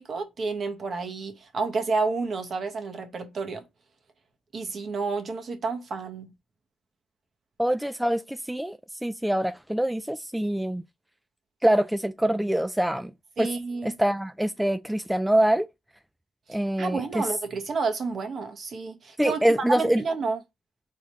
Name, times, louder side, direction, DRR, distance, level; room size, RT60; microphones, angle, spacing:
voice 1, 0.0-3.6 4.5-6.3 13.4-13.9 16.5-20.4, right 4 dB, 50° right, 1.3 m, -30 dB
voice 2, 7.6-10.8 11.6-13.1 13.4-13.5 13.8-15.7 16.5-17.3 19.2-20.0, right 1 dB, 5° right, 0.4 m, -25 dB
4.0 x 3.6 x 3.2 m
cardioid pair, 90°, 0 cm